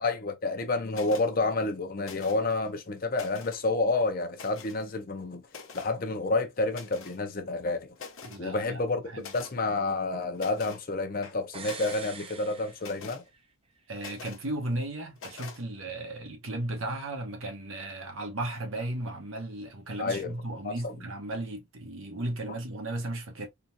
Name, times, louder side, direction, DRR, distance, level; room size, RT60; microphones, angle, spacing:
voice 1, 0.0-5.4 5.7-7.9 8.4-9.0 9.3-13.2 20.0-20.3 20.6-20.9, left 3 dB, 40° left, 0.6 m, -29 dB
sound 1, 0.9-1.3 2.0-2.5 3.0-3.6 4.3-4.8 5.5-5.9 6.7-7.2 7.6-7.7 7.9-8.4 9.2-9.6 10.3-10.8 11.2-12.1 12.8-13.2 14.0-14.5 15.2-15.6, left 5 dB, 75° left, 0.8 m, -45 dB
voice 2, 8.2-9.3 13.9-23.5, right 1 dB, 75° right, 1.1 m, -35 dB
sound 2, 11.5-13.5 13.8-13.9, right 5 dB, 25° right, 0.5 m, -44 dB
3.8 x 2.4 x 2.6 m
head